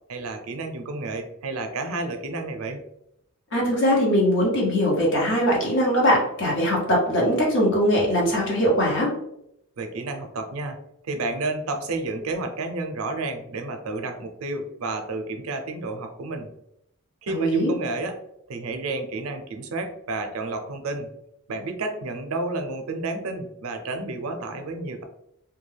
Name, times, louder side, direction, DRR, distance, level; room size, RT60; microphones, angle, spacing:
voice 1, 0.1-2.8 9.8-16.5 17.2-18.2 18.5-21.1 21.5-25.0, right 2 dB, 80° right, 5 dB, 0.5 m, -31 dB
voice 2, 3.5-9.1 17.3-17.7, equal, 60° left, -3 dB, 1.0 m, -21 dB
2.2 x 2.2 x 3.2 m, 0.76 s
head